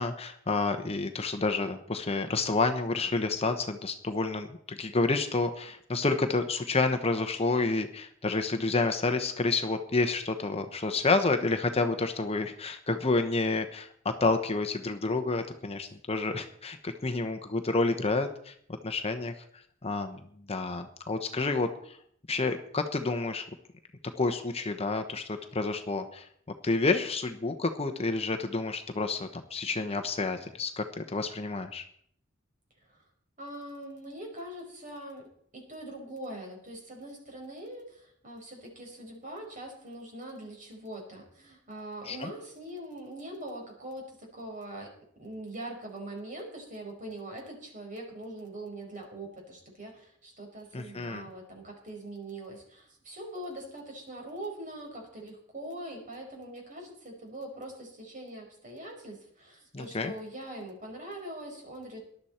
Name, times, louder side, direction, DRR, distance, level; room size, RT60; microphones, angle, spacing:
voice 1, 0.0-18.5 18.8-19.3 19.8-20.2 20.5-21.7 22.3-23.5 24.2-26.3 26.6-31.8 42.1-42.3 50.7-51.3 59.7-60.1, left 3 dB, 30° left, 7 dB, 0.9 m, -29 dB
voice 2, 21.3-21.8 32.9-33.0 33.4-35.2 35.5-44.9 45.2-62.0, right 1 dB, 40° right, 1 dB, 4.8 m, -42 dB
19.0 x 12.0 x 4.4 m, 0.66 s
head